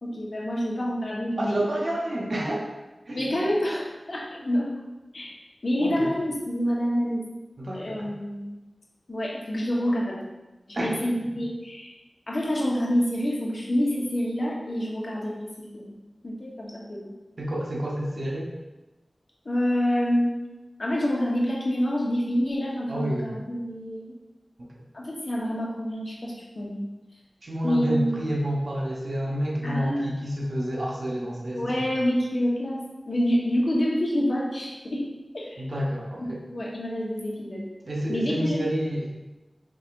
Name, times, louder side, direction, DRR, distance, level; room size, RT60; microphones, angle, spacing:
voice 1, 0.0-1.8 3.1-4.7 5.1-5.3 5.6-7.2 7.7-8.5 9.1-10.2 10.7-11.9 12.3-15.9 16.2-17.1 19.4-20.4 20.8-24.0 24.9-26.8 27.6-28.1 29.6-30.1 31.5-32.8 33.1-35.0 35.3-35.6 36.2-37.6 38.1-38.6, equal, 65° left, -4 dB, 1.0 m, -27 dB
voice 2, 1.4-2.7 3.1-3.4 5.8-6.1 7.6-8.1 10.7-11.0 17.4-18.5 22.9-23.3 24.6-24.7 27.4-31.9 35.6-36.4 37.8-39.1, equal, 70° right, -3 dB, 0.8 m, -29 dB
4.8 x 3.2 x 2.5 m, 1.1 s
wide cardioid pair, 60°, 0 cm